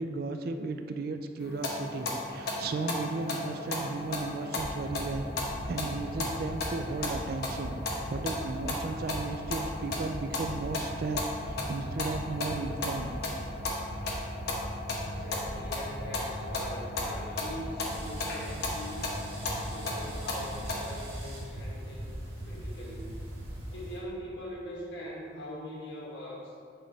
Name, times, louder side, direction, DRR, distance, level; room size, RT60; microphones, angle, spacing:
voice 1, 0.0-7.8 8.1-13.2, right 3 dB, 50° right, 7 dB, 0.3 m, -35 dB
sound 1, 1.4-20.9, left 2 dB, 55° left, 0.9 m, -36 dB
sound 2, 4.6-4.7 4.9-5.1 5.4-5.6 5.9-6.1 6.4-6.6 6.9-7.1 7.4-7.6 7.9-8.1 8.4-8.6 8.9-9.1 9.4-9.6 9.9-10.1 10.4-10.6 10.9-11.1 11.4-11.6 11.9-12.1 12.4-12.6 12.9-13.1 13.4-13.6 13.9-14.1 14.4-14.6 14.9-15.1 15.4-15.6 15.9-16.1 16.4-16.6 16.9-17.1 17.4-17.6 17.9-18.1 18.4-18.6 18.9-19.1 19.4-19.6 19.9-20.1 20.4-20.6 20.9-21.1 21.4-21.6 21.9-22.1 22.4-22.6 22.9-23.1 23.4-23.6, right 1 dB, 75° right, 0.9 m, -42 dB
voice 2, 15.0-19.2 19.6-22.1 22.4-23.2 23.7-26.5, equal, 75° left, -4 dB, 1.4 m, -42 dB
sound 3, 17.8-24.0, right 1 dB, 35° right, 1.5 m, -49 dB
7.7 x 3.3 x 3.9 m, 2.3 s
head